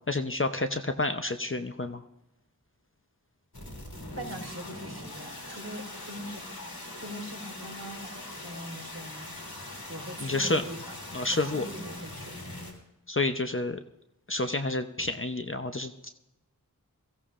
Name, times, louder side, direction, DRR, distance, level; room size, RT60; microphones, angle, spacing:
voice 1, 0.1-2.0 10.2-10.6 11.1-11.6 13.1-13.8 14.3-16.1, left 2 dB, 35° left, 7 dB, 0.8 m, -29 dB
sound 1, 3.5-12.7, left 1 dB, 75° left, 3.2 m, -42 dB
voice 2, 4.2-9.3 9.9-10.9 11.3-12.3, equal, 45° right, 1 dB, 4.1 m, -42 dB
22.5 x 16.0 x 2.5 m, 0.93 s
wide cardioid pair, 45°, 36 cm